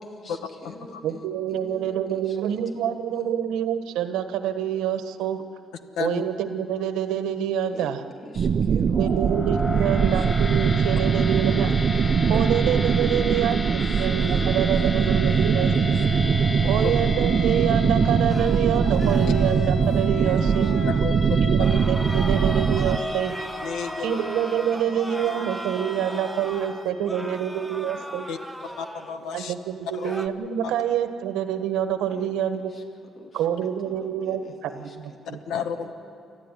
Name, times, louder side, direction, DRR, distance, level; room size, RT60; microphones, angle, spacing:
voice 1, 0.0-3.3 7.7-7.9 8.2-9.4 9.7-10.3 13.2-14.4 14.8-16.1 20.2-20.7 21.1-21.3 24.7-25.5 25.8-26.2 27.3-28.1 28.6-28.7 32.1-32.3 32.6-35.4 35.7-35.9, left 1 dB, 50° left, 1 dB, 3.4 m, -47 dB
voice 2, 1.0-5.4 6.0-8.0 8.7-11.7 12.3-15.7 16.7-20.7 21.4-23.4 24.0-28.2 29.3-32.7 33.3-35.4, right 9 dB, 90° right, 9 dB, 1.3 m, -27 dB
sound 1, 8.4-23.0, right 6 dB, 50° right, 0.8 m, -22 dB
sound 2, 8.9-27.2, left 2 dB, 25° left, 1.7 m, -34 dB
sound 3, 18.3-21.0 21.6-29.4 29.8-30.3, right 1 dB, ahead, 1.2 m, -38 dB
voice 3, 23.6-24.2 28.3-28.4 28.8-29.5 29.9-30.1 30.6-30.7 35.3-35.9, left 6 dB, 85° left, 8 dB, 1.3 m, -31 dB
29.0 x 13.5 x 9.9 m, 2.5 s
cardioid pair, 90°, 0 cm